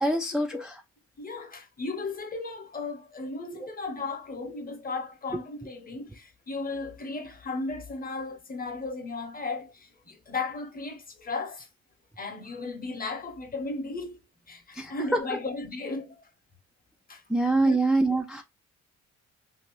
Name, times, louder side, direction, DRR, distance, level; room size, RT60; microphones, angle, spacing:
voice 1, 0.0-0.8 3.5-3.7 14.7-15.2 17.3-18.4, right 2 dB, ahead, 0.3 m, -25 dB
voice 2, 1.2-11.7 12.2-14.2 14.5-16.1 17.1-17.2 17.6-17.8, left 3 dB, 30° left, 0.8 m, -35 dB
2.8 x 2.7 x 3.0 m
cardioid pair, 90°, 30 cm